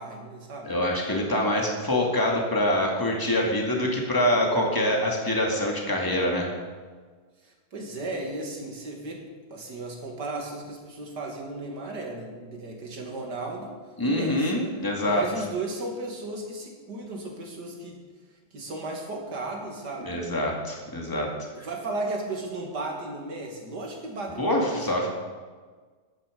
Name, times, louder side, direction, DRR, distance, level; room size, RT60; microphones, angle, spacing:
voice 1, 0.0-0.8 7.4-13.8 14.0-14.5 15.0-18.0 18.5-20.3 21.4-24.8, right 2 dB, 80° right, 1 dB, 2.8 m, -35 dB
voice 2, 0.7-6.5 14.0-15.2 20.0-21.3 21.6-21.7 24.4-25.1, left 1 dB, 10° left, -1 dB, 2.2 m, -25 dB
14.5 x 10.5 x 5.2 m, 1.5 s
omnidirectional pair, 1.8 m